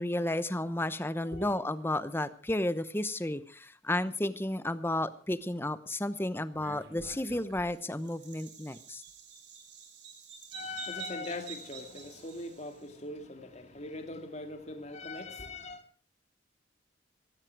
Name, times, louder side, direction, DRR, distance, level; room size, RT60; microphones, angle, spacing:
voice 1, 0.0-9.0, left 1 dB, 10° left, 14 dB, 0.8 m, -32 dB
Bird vocalization bird call bird song, 6.5-12.8, right 5 dB, 65° right, 3.8 m, -48 dB
voice 2, 10.5-15.8, left 2 dB, 35° left, 6 dB, 2.2 m, -41 dB
16.5 x 15.5 x 4.7 m, 0.39 s
head